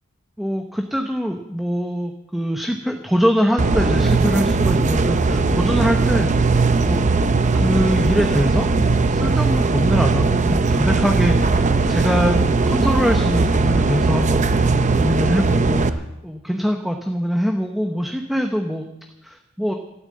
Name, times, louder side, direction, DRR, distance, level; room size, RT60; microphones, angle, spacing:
voice 1, 0.4-6.3 6.8-7.1 7.5-8.7 9.1-11.6 11.9-12.4 12.7-18.9 19.2-19.7, equal, ahead, 3 dB, 0.8 m, -23 dB
sound 1, 3.6-15.9, right 3 dB, 35° right, 0.7 m, -18 dB
13.0 x 13.0 x 7.6 m, 0.91 s
head